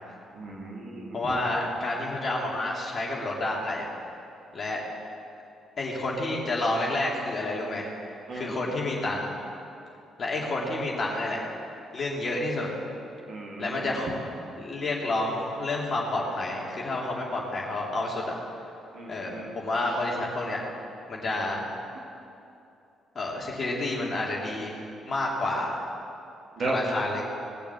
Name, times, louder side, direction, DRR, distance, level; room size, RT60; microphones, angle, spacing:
voice 1, 0.3-1.2 8.3-8.6 13.3-13.9 18.9-19.6 26.6-26.8, right 2 dB, 50° right, -2 dB, 2.7 m, -35 dB
voice 2, 1.1-3.9 4.5-4.8 5.8-7.9 8.3-9.3 10.2-11.4 11.9-12.7 13.6-14.3 14.6-18.3 19.1-20.6 21.1-21.6 23.1-24.8 25.0-25.8 26.6-27.2, left 2 dB, 40° left, -3 dB, 3.3 m, -29 dB
20.5 x 7.0 x 7.6 m, 2.7 s
figure-of-eight pair, 40°, 0 cm